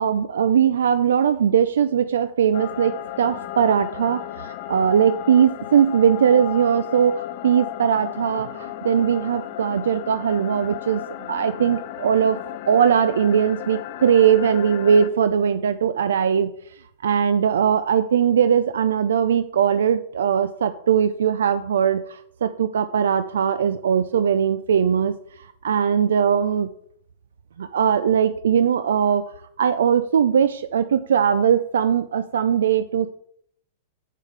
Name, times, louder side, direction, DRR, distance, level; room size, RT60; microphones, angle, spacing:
voice 1, 0.0-12.4 12.7-16.5 17.0-25.1 25.6-26.7 27.6-29.3 29.6-33.1, right 8 dB, 80° right, 12 dB, 0.4 m, -20 dB
sound 1, 2.5-15.1, left 13 dB, 55° left, 0.6 m, -34 dB
7.6 x 7.0 x 3.3 m, 0.65 s
hypercardioid pair, 110°, 0 cm